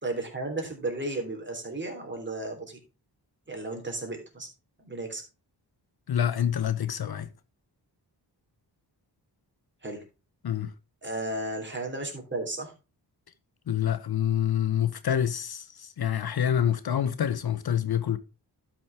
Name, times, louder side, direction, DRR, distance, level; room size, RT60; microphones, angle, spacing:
voice 1, 0.0-2.8 3.5-4.5 4.8-5.2 9.8-10.0 11.0-12.7, right 2 dB, 25° right, 3.3 m, -34 dB
voice 2, 6.1-7.3 10.4-10.7 13.7-18.2, left 9 dB, 60° left, 0.8 m, -27 dB
12.0 x 6.1 x 3.4 m
wide cardioid pair, 110°, 42 cm